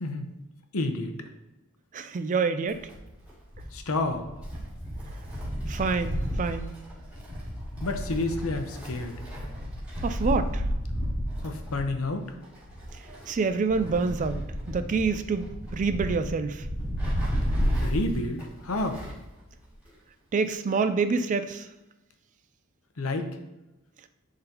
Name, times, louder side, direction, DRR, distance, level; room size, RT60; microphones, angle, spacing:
voice 1, 0.7-1.1 3.7-4.2 7.8-9.1 11.4-12.3 17.8-19.0 23.0-23.3, left 2 dB, 65° left, 6 dB, 0.8 m, -29 dB
voice 2, 1.9-2.9 5.7-6.7 10.0-10.6 13.1-16.7 20.3-21.7, right 4 dB, 35° right, 10 dB, 0.3 m, -27 dB
Wind, 2.7-19.3 19.6-19.7 20.7-20.8, equal, 5° right, 2.2 m, -32 dB
10.5 x 3.8 x 2.9 m, 1.0 s
head